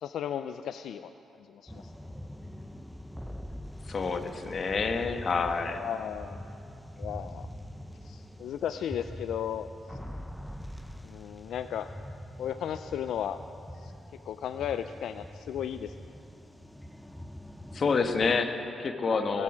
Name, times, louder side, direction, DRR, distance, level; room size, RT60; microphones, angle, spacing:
voice 1, 0.0-1.1 1.6-1.8 5.8-6.4 7.0-7.5 8.1-9.7 11.0-11.9 12.4-13.4 13.8-13.9 14.3-15.9 19.3-19.4, left 9 dB, 80° left, 10 dB, 0.3 m, -35 dB
sound 1, 1.7-18.4, equal, 5° left, 0.6 m, -44 dB
voice 2, 3.9-5.8 17.7-19.4, left 4 dB, 50° left, 7 dB, 1.2 m, -28 dB
19.0 x 11.0 x 6.2 m, 2.9 s
cardioid pair, 80°, 0 cm